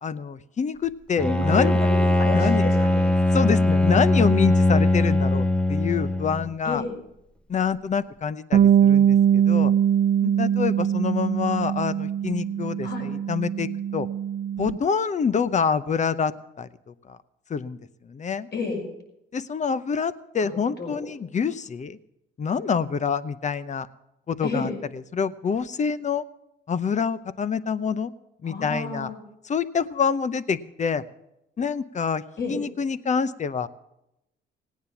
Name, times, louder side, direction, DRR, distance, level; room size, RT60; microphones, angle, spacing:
voice 1, 0.0-1.8 2.3-2.6 3.3-6.8 7.5-9.7 10.2-14.1 14.6-16.3 16.6-16.7 17.1-17.2 17.5-17.8 18.1-18.5 19.3-22.0 22.4-23.9 24.3-24.7 25.1-26.2 26.7-28.1 28.4-29.1 29.5-31.0 31.6-32.2 32.5-33.7, left 6 dB, 35° left, 15 dB, 0.8 m, -26 dB
voice 2, 1.2-3.1 6.6-6.9 12.8-13.1 18.5-18.8 20.4-20.5 20.8-21.0 24.4-24.7 28.4-29.2 32.4-32.6, left 3 dB, 55° left, 0 dB, 5.7 m, -31 dB
Bowed string instrument, 1.2-6.5, left 1 dB, 5° left, 0.8 m, -20 dB
Bass guitar, 8.5-14.8, right 9 dB, 50° right, 0.5 m, -22 dB
17.5 x 9.4 x 7.1 m, 0.85 s
cardioid pair, 90°, 20 cm